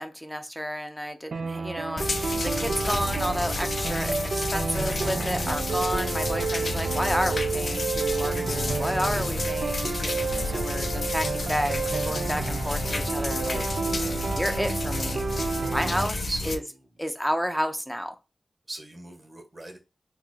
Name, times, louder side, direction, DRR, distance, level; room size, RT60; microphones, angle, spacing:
voice 1, 0.0-13.6 13.9-14.1 14.4-15.2 15.7-16.2 16.5-16.6 17.0-18.2, equal, ahead, 6 dB, 0.5 m, -31 dB
sound 1, 1.3-16.1, right 4 dB, 80° right, 0.4 m, -30 dB
sound 2, 2.0-16.6, left 2 dB, 60° left, 0.4 m, -31 dB
voice 2, 15.9-16.8 18.7-19.8, right 2 dB, 40° right, 2 dB, 1.1 m, -38 dB
3.5 x 2.0 x 3.2 m, 0.27 s
cardioid pair, 55°, 0 cm